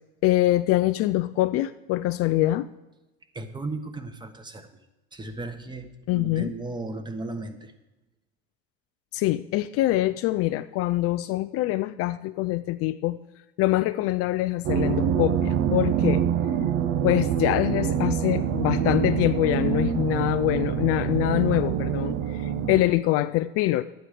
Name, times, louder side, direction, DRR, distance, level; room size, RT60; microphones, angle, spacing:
voice 1, 0.2-2.7 6.1-6.5 9.1-13.2 13.6-16.2 17.0-23.8, left 16 dB, 45° left, 12 dB, 0.4 m, -24 dB
voice 2, 3.3-4.8 5.1-7.7, right 2 dB, 15° right, 8 dB, 1.2 m, -36 dB
sound 1, 14.6-22.8, right 9 dB, 50° right, 0.8 m, -25 dB
11.5 x 9.1 x 4.9 m, 1.0 s
hypercardioid pair, 95°, 31 cm